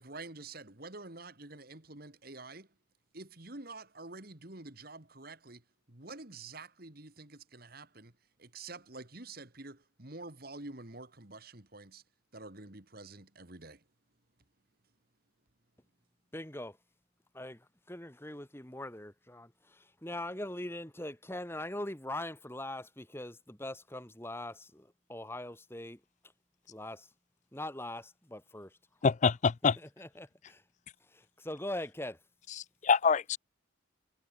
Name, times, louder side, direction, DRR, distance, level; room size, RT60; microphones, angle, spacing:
voice 1, 0.0-2.7 3.1-8.1 8.4-12.0 12.3-13.8, right 3 dB, 50° right, 2.3 m, -48 dB
voice 2, 16.3-16.8 17.3-26.0 26.7-27.1 27.5-28.7 29.8-30.6 31.0-32.2, left 1 dB, 10° left, 2.1 m, -42 dB
voice 3, 29.0-29.8 32.5-33.4, left 5 dB, 35° left, 0.4 m, -26 dB
head